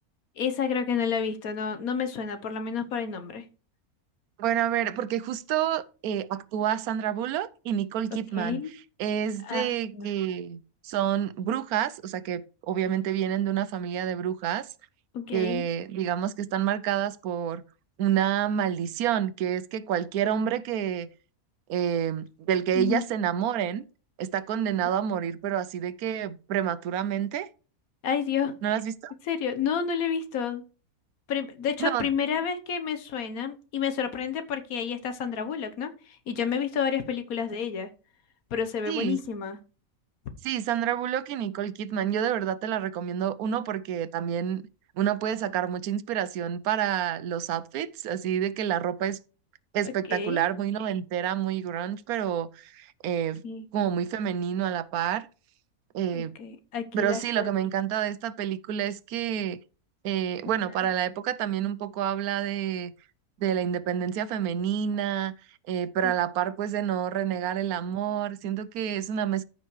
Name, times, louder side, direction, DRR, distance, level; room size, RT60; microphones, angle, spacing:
voice 1, 0.4-3.4 8.3-8.7 9.4-10.1 15.1-15.6 22.7-23.0 28.0-28.5 29.3-30.6 31.3-37.9 38.5-39.6 49.8-50.5 53.4-53.6 56.1-57.5 66.0-66.1, left 7 dB, 75° left, 1.5 m, -30 dB
voice 2, 4.4-8.6 9.0-14.7 15.3-17.6 18.0-21.1 21.7-23.8 24.2-27.5 28.6-29.1 31.8-32.1 38.9-39.2 40.4-44.6 45.0-49.2 49.7-53.4 53.7-55.3 55.9-56.3 56.9-59.6 60.0-62.9 63.4-65.3 65.7-69.5, right 9 dB, 90° right, 1.1 m, -28 dB
14.0 x 5.5 x 3.2 m
omnidirectional pair, 1.5 m